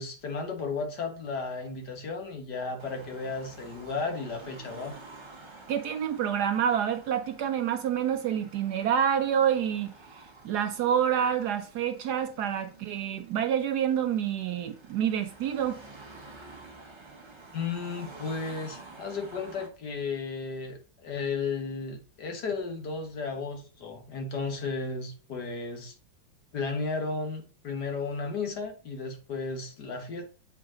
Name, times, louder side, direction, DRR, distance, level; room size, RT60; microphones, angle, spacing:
voice 1, 0.0-4.9 17.5-25.9 26.5-30.2, left 4 dB, 60° left, 1.8 m, -34 dB
Car passing by / Traffic noise roadway noise / Engine, 2.8-19.7, right 3 dB, 20° right, 0.7 m, -50 dB
voice 2, 5.7-15.8, right 9 dB, 70° right, 1.1 m, -28 dB
7.9 x 4.7 x 3.7 m
omnidirectional pair, 2.0 m